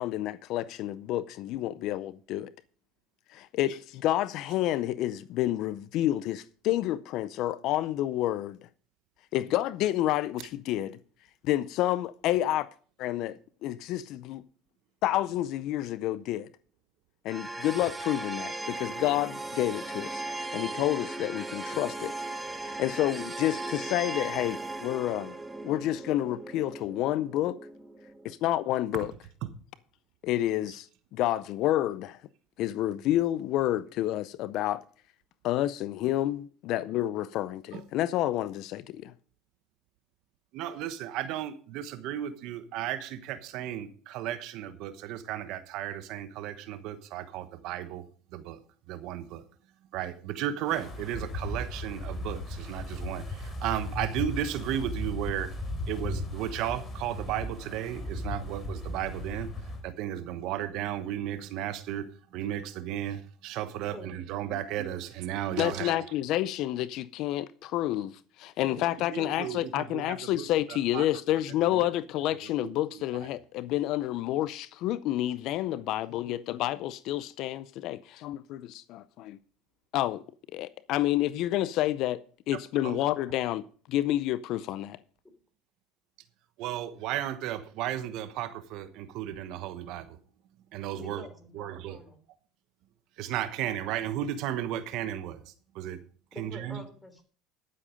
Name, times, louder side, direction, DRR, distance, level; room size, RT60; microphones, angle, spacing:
voice 1, 0.0-2.5 3.3-8.6 9.3-11.0 11.4-12.7 13.0-14.4 15.0-16.5 17.2-22.1 22.5-25.4 25.6-27.6 28.2-29.1 30.2-30.9 31.1-32.2 32.6-34.8 35.4-39.1 65.6-79.4 79.9-80.2 80.5-82.2 82.5-83.6 83.9-85.0, left 14 dB, 60° left, 0.5 m, -29 dB
sound 1, 17.3-28.3, right 2 dB, 10° right, 1.1 m, -38 dB
voice 2, 40.5-48.0 48.3-48.6 48.9-49.5 49.9-55.5 55.9-66.0 69.1-71.1 71.7-71.9 72.9-73.0 82.8-83.0 86.6-90.2 90.7-91.2 91.5-92.0 93.2-96.0 96.4-96.8, right 11 dB, 65° right, 1.1 m, -34 dB
Wind, 50.7-59.8, left 1 dB, 30° left, 3.4 m, -37 dB
voice 3, 68.6-68.9 91.0-92.2 96.3-97.2, left 2 dB, 10° left, 3.3 m, -46 dB
12.5 x 7.6 x 5.1 m
supercardioid pair, 100°, 0 cm